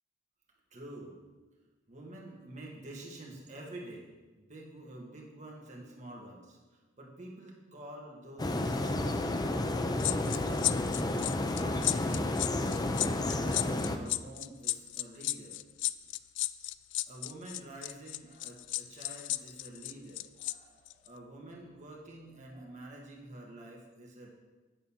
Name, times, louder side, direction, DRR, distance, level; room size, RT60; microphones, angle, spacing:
voice 1, 0.7-1.2 1.9-4.1 4.4-11.3 11.6-12.3 12.8-15.6 17.1-24.3, right 1 dB, 40° right, -2 dB, 1.9 m, -48 dB
sound 1, 8.4-14.0, left 2 dB, 20° left, 0.5 m, -31 dB
sound 2, 10.0-20.5 20.9-21.1, left 18 dB, 70° left, 0.3 m, -33 dB
8.9 x 4.1 x 7.1 m, 1.2 s
head